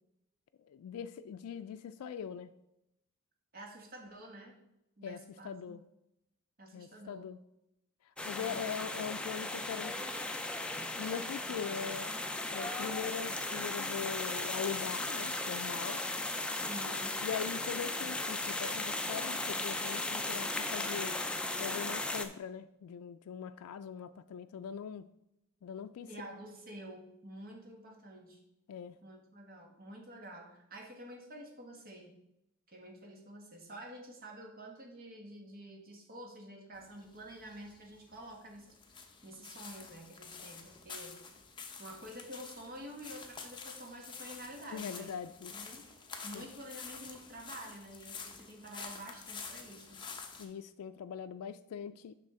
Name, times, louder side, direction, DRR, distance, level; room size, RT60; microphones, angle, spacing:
voice 1, 0.6-2.5 5.0-5.8 6.7-7.4 8.0-10.0 11.0-12.1 12.5-16.0 17.2-21.2 21.6-25.1 25.6-26.1 28.7-29.0 44.7-45.5 46.3-46.4 50.4-52.1, left 7 dB, 85° left, 9 dB, 0.3 m, -41 dB
voice 2, 3.5-4.6 5.0-5.8 6.6-7.2 8.3-8.7 16.5-17.2 26.1-28.4 29.0-32.1 32.7-38.8 39.2-41.2 41.8-45.1 45.5-45.9 46.2-50.0, right 1 dB, 40° right, 1 dB, 1.5 m, -49 dB
sound 1, 8.2-22.3, left 2 dB, 5° left, 0.4 m, -36 dB
sound 2, 36.8-50.5, left 5 dB, 20° left, 0.8 m, -48 dB
6.4 x 6.1 x 4.3 m, 0.84 s
head